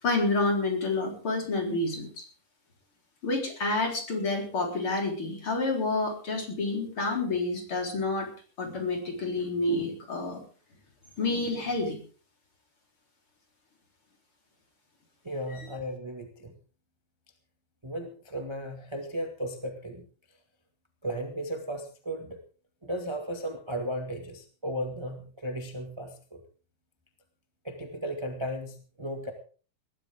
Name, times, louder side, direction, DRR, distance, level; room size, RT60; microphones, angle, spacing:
voice 1, 0.0-2.3 3.2-8.3 8.6-10.4 11.2-12.0 15.5-15.7, left 2 dB, 40° left, 2 dB, 4.8 m, -29 dB
voice 2, 15.2-16.5 17.8-20.0 21.0-22.4 22.8-26.4 27.6-29.3, equal, 15° right, 4 dB, 1.1 m, -35 dB
20.0 x 14.5 x 3.7 m, 0.38 s
omnidirectional pair, 4.0 m